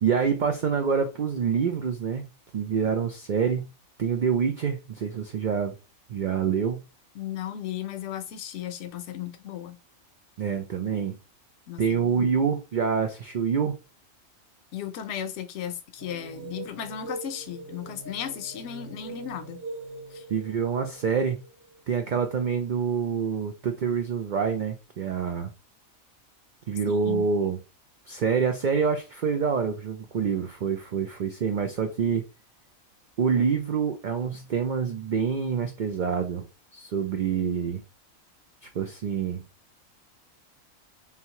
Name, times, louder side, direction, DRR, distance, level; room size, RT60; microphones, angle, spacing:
voice 1, 0.0-2.2 2.5-3.7 4.0-5.8 6.1-6.8 10.4-11.2 11.8-13.8 20.3-21.4 21.9-25.5 26.7-27.6 28.1-32.2 33.2-36.5 36.7-37.8 38.6-39.4, right 6 dB, 75° right, 0.4 m, -26 dB
voice 2, 7.2-9.8 11.7-12.3 14.7-19.6 20.1-20.2 26.9-27.3, left 10 dB, 65° left, 0.9 m, -35 dB
sound 1, 16.0-22.4, right 3 dB, 50° right, 0.9 m, -42 dB
3.7 x 2.7 x 2.9 m
omnidirectional pair, 1.4 m